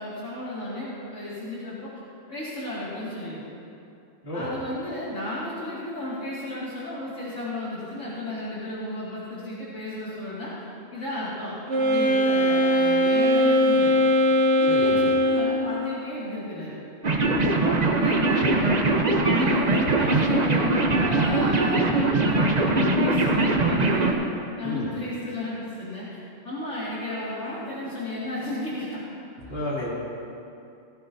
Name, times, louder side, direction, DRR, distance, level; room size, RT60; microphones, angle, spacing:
voice 1, 0.0-1.9 2.3-3.4 4.3-10.5 10.9-14.0 14.6-16.8 17.6-18.7 19.2-24.2 24.6-26.2 26.4-29.0, left 1 dB, 70° left, -9 dB, 2.7 m, -33 dB
Wind instrument woodwind instrument, 11.7-15.7, left 1 dB, 65° right, 2.0 m, -20 dB
voice 2, 14.7-15.1 17.2-17.5 24.6-24.9 29.4-29.9, left 1 dB, 50° left, -7 dB, 3.0 m, -32 dB
sound 1, 17.0-24.1, right 2 dB, 35° right, 0.9 m, -22 dB
17.0 x 14.0 x 2.7 m, 2.7 s
omnidirectional pair, 1.3 m